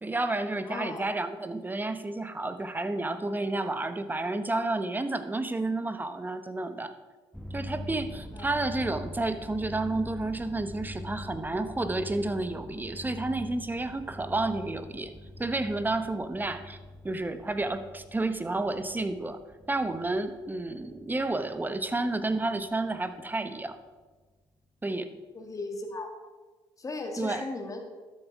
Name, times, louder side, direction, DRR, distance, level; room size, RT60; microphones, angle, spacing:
voice 1, 0.0-6.9 7.5-15.1 15.4-16.8 17.0-19.4 19.7-23.8 24.8-25.1 27.2-27.4, right 2 dB, 20° right, 11 dB, 1.1 m, -31 dB
voice 2, 0.5-1.1 8.3-8.5 25.3-26.1 26.8-27.8, left 2 dB, 35° left, 3 dB, 2.2 m, -37 dB
sound 1, 7.3-23.4, left 1 dB, ahead, 1.2 m, -44 dB
12.5 x 7.2 x 4.7 m, 1.3 s
hypercardioid pair, 55°, 10 cm